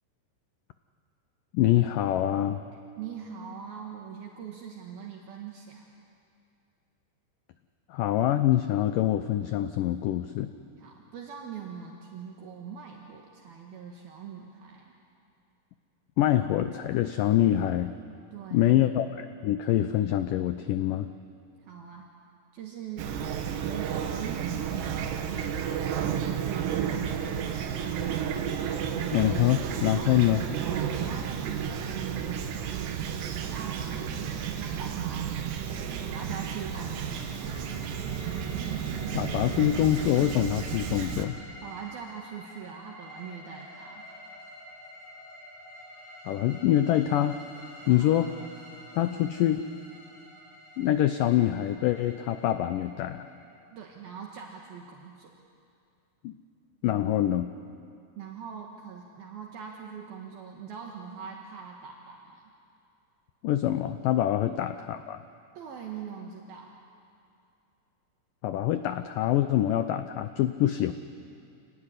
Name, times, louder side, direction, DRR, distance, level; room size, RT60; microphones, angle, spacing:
voice 1, 1.5-2.6 7.9-10.5 16.2-17.9 18.5-21.1 29.1-30.4 39.1-41.3 46.3-47.4 47.9-48.3 48.9-49.7 50.8-53.3 56.2-56.3 56.8-57.5 63.4-65.2 68.4-70.9, left 12 dB, 90° left, 10 dB, 1.9 m, -25 dB
voice 2, 3.0-5.8 10.8-14.9 18.3-18.9 21.6-22.1 22.5-23.2 23.6-27.4 29.9-33.0 33.5-35.6 35.9-37.2 41.6-44.1 47.8-48.2 53.7-55.3 58.2-62.5 64.4-64.5 65.5-66.8, right 7 dB, 65° right, 0 dB, 3.3 m, -42 dB
Fowl / Chirp tweet, 23.0-41.3, right 8 dB, 85° right, 3.6 m, -32 dB
sound 1, 36.1-54.0, left 1 dB, 65° left, 9.0 m, -49 dB
27.5 x 18.5 x 10.0 m, 2.5 s
omnidirectional pair, 4.8 m